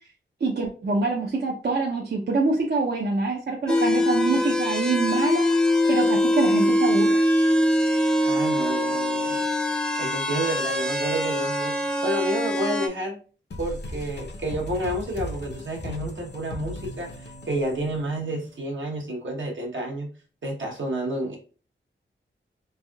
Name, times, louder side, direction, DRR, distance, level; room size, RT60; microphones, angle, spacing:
voice 1, 0.4-5.5 5.8-7.3, right 3 dB, 55° right, -1 dB, 0.5 m, -25 dB
sound 1, 3.7-12.9, left 1 dB, 5° left, 0.3 m, -23 dB
voice 2, 8.2-9.5 10.0-13.2 13.6-20.1 20.4-21.4, right 1 dB, 70° right, -1 dB, 1.0 m, -30 dB
sound 2, 13.5-18.8, left 1 dB, 60° left, 0.6 m, -37 dB
3.3 x 2.6 x 2.2 m, 0.38 s
wide cardioid pair, 70°, 20 cm